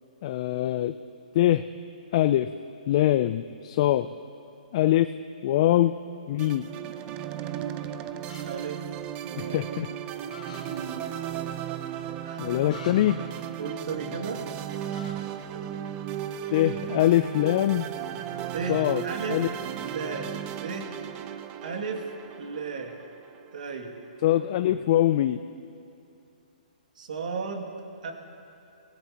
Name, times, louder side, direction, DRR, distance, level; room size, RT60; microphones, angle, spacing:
voice 1, 0.2-0.9 1.3-1.6 2.1-2.5 2.9-4.1 4.7-5.1 5.4-5.9 6.3-6.7 9.4-9.9 12.4-13.2 16.5-17.9 18.7-19.0 19.3-19.5 24.2-25.4, left 13 dB, 40° left, 11 dB, 0.4 m, -23 dB
sound 1, 6.4-23.8, right 10 dB, 25° right, 0.6 m, -36 dB
sound 2, 8.3-8.4 10.3-10.6 12.7-12.9 14.9-15.2, left 6 dB, 65° left, 3.1 m, -45 dB
voice 2, 8.5-8.8 9.2-10.0 10.5-11.1 12.2-12.5 13.6-14.4 15.0-15.1 15.5-15.6 16.5-16.7 18.5-19.4 19.8-20.9 21.6-22.1 22.4-23.0 23.5-23.9 27.0-27.7 28.0-28.1, right 5 dB, 65° right, 2 dB, 2.3 m, -35 dB
25.0 x 16.5 x 2.9 m, 2.7 s
hypercardioid pair, 145°, 5 cm